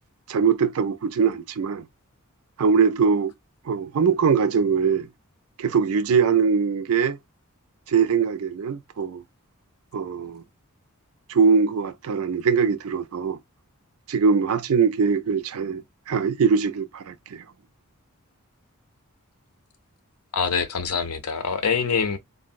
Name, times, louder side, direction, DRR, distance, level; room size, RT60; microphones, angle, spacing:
voice 1, 0.3-1.9 2.6-3.3 3.7-5.1 5.6-7.2 7.9-9.2 9.9-10.4 11.3-13.4 14.1-17.4, right 5 dB, 70° right, 0.4 m, -22 dB
voice 2, 20.3-22.2, left 5 dB, 85° left, 0.6 m, -25 dB
3.8 x 2.1 x 2.4 m
head